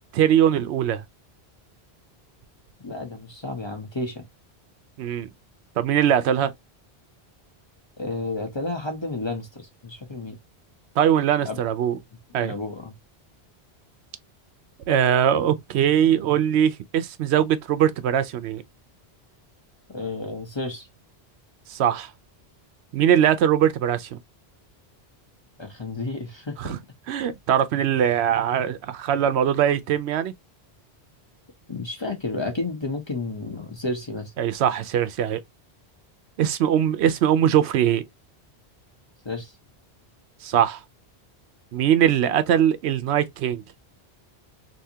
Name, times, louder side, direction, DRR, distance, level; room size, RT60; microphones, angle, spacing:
voice 1, 0.1-1.0 5.0-5.3 5.8-6.5 11.0-12.0 12.3-12.5 14.9-18.6 21.7-22.1 22.9-24.2 26.6-26.8 27.1-30.3 34.4-35.4 36.4-38.0 40.4-40.8 41.7-43.6, right 9 dB, 80° right, 0.8 m, -21 dB
voice 2, 2.8-4.2 8.0-10.4 11.4-11.6 12.4-12.9 19.9-20.9 25.6-26.8 31.7-34.3 39.2-39.5, left 2 dB, 30° left, 0.7 m, -31 dB
3.4 x 2.8 x 2.7 m
omnidirectional pair, 1.1 m